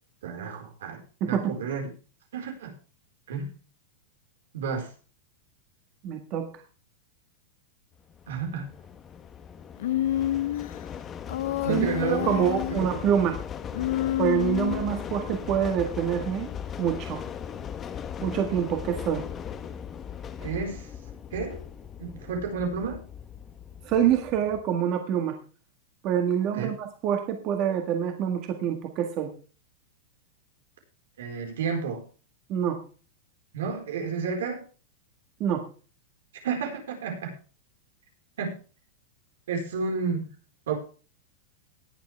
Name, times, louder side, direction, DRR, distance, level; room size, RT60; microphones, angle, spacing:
voice 1, 0.2-1.8 2.3-2.7 3.3-3.5 4.5-4.9 8.3-8.7 11.6-12.3 12.7-12.9 20.4-20.9 21.3-21.6 22.0-23.0 26.5-26.7 31.2-32.0 33.5-34.6 36.4-37.3 38.4-38.6 39.5-40.3 40.7-40.8, right 5 dB, 85° right, 3 dB, 4.5 m, -31 dB
voice 2, 1.2-1.6 6.0-6.5 11.7-13.4 14.2-16.5 16.8-17.2 18.2-19.2 23.8-25.4 26.0-29.3 32.5-32.8 35.4-35.6, right 9 dB, 35° right, 4 dB, 1.8 m, -26 dB
sound 1, 8.1-24.6, left 8 dB, 20° left, 1.0 m, -38 dB
Human voice, 9.8-10.8 11.3-12.9 13.7-15.0, left 13 dB, 65° left, 0.7 m, -28 dB
19.0 x 7.2 x 3.4 m, 0.36 s
supercardioid pair, 155°, 0 cm